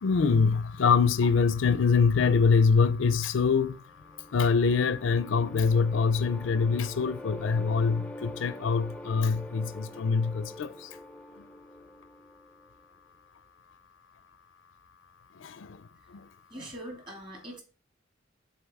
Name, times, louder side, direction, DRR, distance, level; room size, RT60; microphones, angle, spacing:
voice 1, 0.0-3.8 4.3-10.7 15.4-15.7, left 5 dB, 75° left, 0.4 m, -24 dB
sound 1, 3.7-12.9, left 1 dB, 5° left, 0.4 m, -45 dB
voice 2, 16.5-17.6, right 1 dB, 25° right, 2.0 m, -42 dB
7.1 x 4.0 x 3.5 m
head